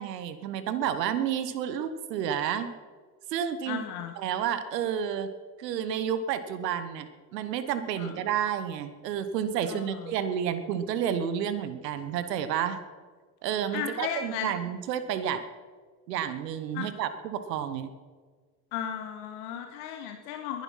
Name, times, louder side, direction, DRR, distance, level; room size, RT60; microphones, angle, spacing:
voice 1, 0.0-2.7 3.3-3.8 4.2-5.3 5.6-12.8 13.4-15.4 16.1-17.9, right 9 dB, 85° right, 12 dB, 1.0 m, -30 dB
voice 2, 3.7-4.1 8.0-8.1 9.7-10.1 13.7-14.5 16.7-16.9 18.7-20.6, left 9 dB, 75° left, 5 dB, 1.4 m, -35 dB
20.0 x 11.5 x 5.7 m, 1.5 s
hypercardioid pair, 50°, 48 cm